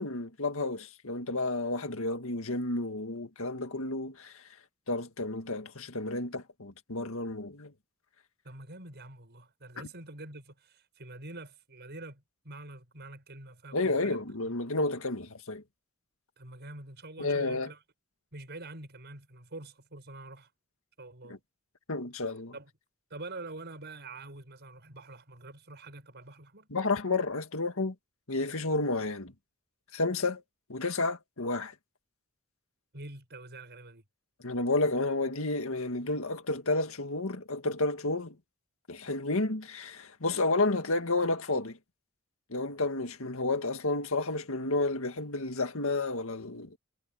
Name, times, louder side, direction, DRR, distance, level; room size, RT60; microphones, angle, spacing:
voice 1, 0.0-4.4 4.9-7.7 9.8-9.9 13.7-15.6 17.2-17.7 21.3-21.4 21.9-22.5 26.7-27.9 28.3-29.3 29.9-30.4 30.7-31.7 34.4-38.4 38.9-41.8 42.5-46.8, left 2 dB, 65° left, 2.0 m, -31 dB
voice 2, 8.4-14.2 16.4-17.8 18.3-20.5 21.0-21.4 22.5-22.7 23.1-26.7 32.9-34.0, right 2 dB, 50° right, 6.5 m, -46 dB
head